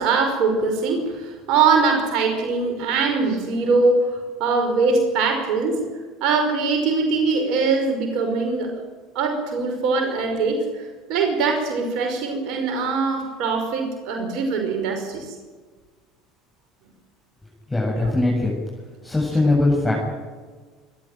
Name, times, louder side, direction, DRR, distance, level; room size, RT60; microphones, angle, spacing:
voice 1, 0.0-5.9 6.2-8.7 9.2-10.6 11.1-15.3 18.0-18.1, right 4 dB, 65° right, 4 dB, 5.5 m, -22 dB
voice 2, 17.7-18.6 19.0-19.9, left 2 dB, 15° left, -3 dB, 7.8 m, -20 dB
28.0 x 13.0 x 9.2 m, 1.4 s
hypercardioid pair, 75°, 0 cm